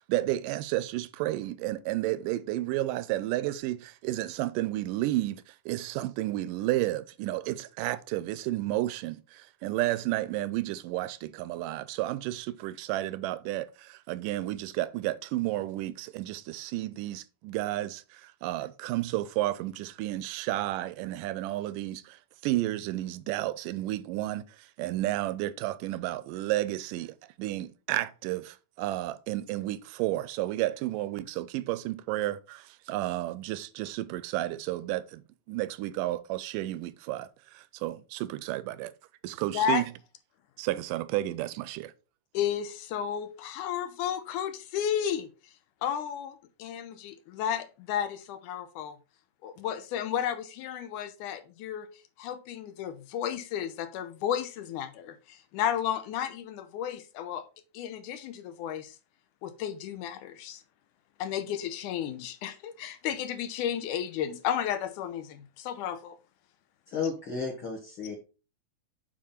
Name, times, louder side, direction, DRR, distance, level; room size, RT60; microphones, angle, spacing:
voice 1, 0.1-38.9 39.2-39.8 40.6-41.9, right 16 dB, 80° right, 2.0 m, -32 dB
voice 2, 42.3-45.3 45.8-49.0 49.4-51.9 52.2-57.4 57.7-59.0 59.4-60.6 61.2-66.2, left 9 dB, 75° left, 2.1 m, -33 dB
voice 3, 66.9-68.1, left 5 dB, 45° left, 2.0 m, -33 dB
7.5 x 4.9 x 4.2 m
omnidirectional pair, 4.0 m